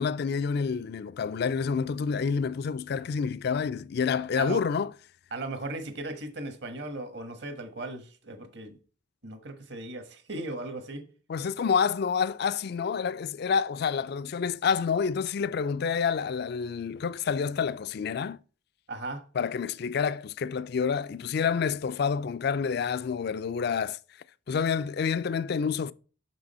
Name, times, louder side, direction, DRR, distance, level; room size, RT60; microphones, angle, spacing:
voice 1, 0.0-4.9 11.3-18.4 19.4-24.0 24.5-25.9, left 6 dB, 55° left, 0.3 m, -28 dB
voice 2, 5.3-8.8 9.2-11.0 18.9-19.2, right 2 dB, 60° right, 1.3 m, -37 dB
6.1 x 6.0 x 4.2 m
head